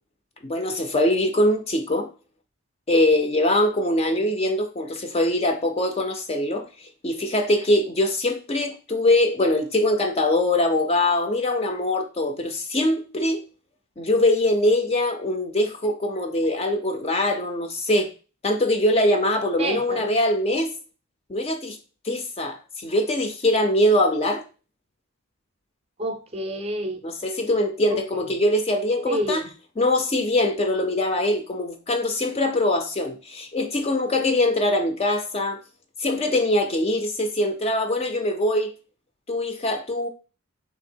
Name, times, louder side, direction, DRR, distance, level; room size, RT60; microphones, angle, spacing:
voice 1, 0.4-2.1 2.9-13.4 14.0-18.1 18.4-20.7 21.3-21.8 22.0-24.4 27.0-29.4 29.8-35.6 36.0-38.7 39.3-40.1, left 1 dB, 30° left, 0.5 m, -23 dB
voice 2, 19.6-20.0 26.0-27.1 27.9-28.2 29.1-29.5, equal, 30° right, 0.5 m, -29 dB
3.6 x 2.8 x 4.4 m
head